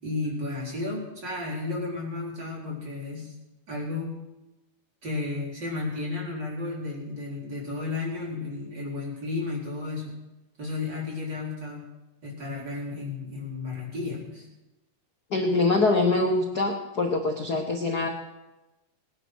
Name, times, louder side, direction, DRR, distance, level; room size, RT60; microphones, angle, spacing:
voice 1, 0.0-3.3 3.7-4.2 5.0-10.2 10.6-11.9 12.2-14.5, left 3 dB, 35° right, -3 dB, 4.8 m, -33 dB
voice 2, 15.3-18.1, left 3 dB, 60° left, 2 dB, 1.0 m, -24 dB
20.0 x 9.8 x 6.3 m, 1.0 s
omnidirectional pair, 3.7 m